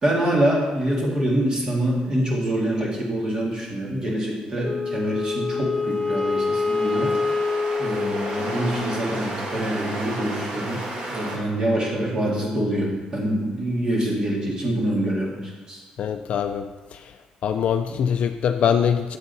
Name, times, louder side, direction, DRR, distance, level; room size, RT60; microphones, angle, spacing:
voice 1, 0.0-7.1 7.8-10.8 11.1-15.4 15.7-15.8 17.8-18.0, right 1 dB, 30° right, -2 dB, 2.0 m, -25 dB
Wind instrument woodwind instrument, 4.6-9.0, left 4 dB, 30° left, 1.2 m, -26 dB
sound 1, 5.7-11.4, right 1 dB, 50° right, 1.8 m, -33 dB
voice 2, 16.0-17.1 17.4-19.2, left 8 dB, 55° left, 7 dB, 0.4 m, -23 dB
8.5 x 7.2 x 4.1 m, 1.3 s
cardioid pair, 155°, 2 cm